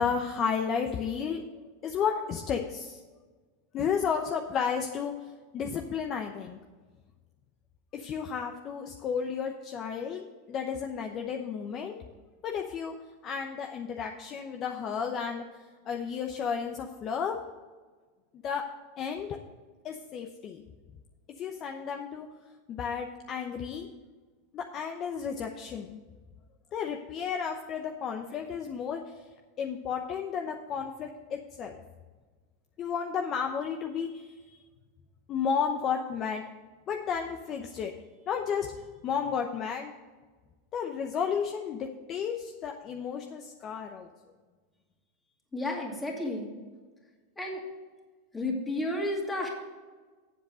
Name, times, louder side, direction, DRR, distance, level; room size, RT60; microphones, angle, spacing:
voice 1, 0.0-1.4 1.8-3.0 3.7-5.1 5.5-6.6 7.9-12.0 12.4-12.9 13.2-15.4 15.9-17.4 18.4-18.6 19.0-19.4 19.8-20.6 21.4-22.3 22.7-23.9 24.5-26.0 26.7-29.0 29.6-31.7 32.8-34.5 35.3-36.4 36.9-37.9 38.3-38.7 39.0-39.9 40.7-44.1, left 7 dB, 35° left, 3 dB, 0.8 m, -32 dB
voice 2, 45.5-46.5 47.4-47.6 48.3-49.5, left 1 dB, 10° left, 0 dB, 2.3 m, -32 dB
8.0 x 7.5 x 6.3 m, 1.4 s
supercardioid pair, 135°, 0 cm